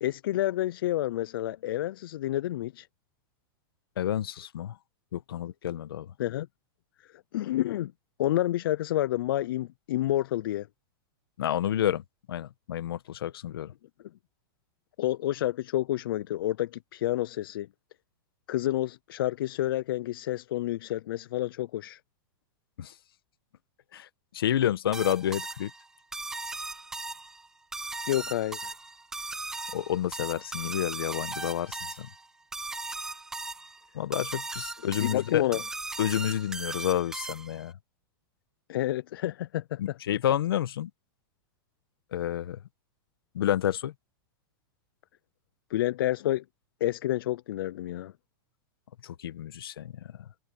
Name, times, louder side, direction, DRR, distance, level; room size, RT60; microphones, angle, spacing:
voice 1, 0.0-2.9 6.2-6.5 7.3-7.9 8.2-10.7 15.0-17.7 18.5-22.0 28.1-28.7 35.0-35.6 38.7-39.8 45.7-46.4 46.8-48.1, left 14 dB, 75° left, 0.5 m, -29 dB
voice 2, 4.0-4.8 5.1-6.1 11.4-12.0 12.3-13.7 22.8-22.9 23.9-24.1 24.3-25.7 29.7-32.1 33.9-35.4 36.0-37.7 39.8-40.9 42.1-42.6 43.3-43.9 49.0-50.1, left 11 dB, 90° left, 1.4 m, -29 dB
sound 1, 24.9-37.7, right 3 dB, 5° right, 0.3 m, -38 dB
supercardioid pair, 150°, 12 cm